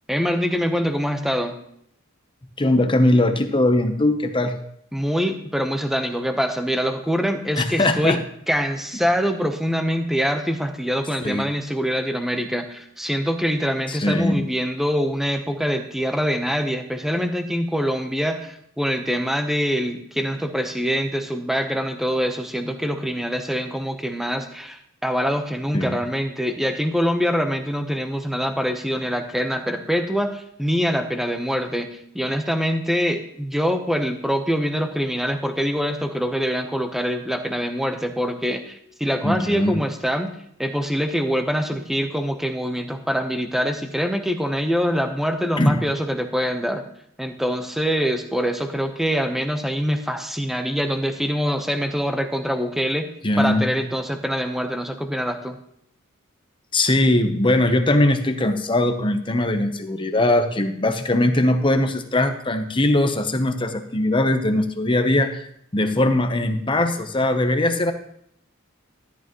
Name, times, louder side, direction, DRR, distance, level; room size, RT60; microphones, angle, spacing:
voice 1, 0.1-1.6 4.9-31.9 32.1-40.3 40.6-46.8 47.2-53.1 53.4-55.6, equal, ahead, 6 dB, 0.9 m, -24 dB
voice 2, 2.6-4.5 7.5-8.2 11.2-11.5 13.9-14.4 25.7-26.0 39.2-39.7 45.6-45.8 53.2-53.7 56.7-65.5 65.7-67.9, left 1 dB, 25° left, 7 dB, 0.9 m, -20 dB
13.0 x 11.5 x 3.1 m, 0.70 s
head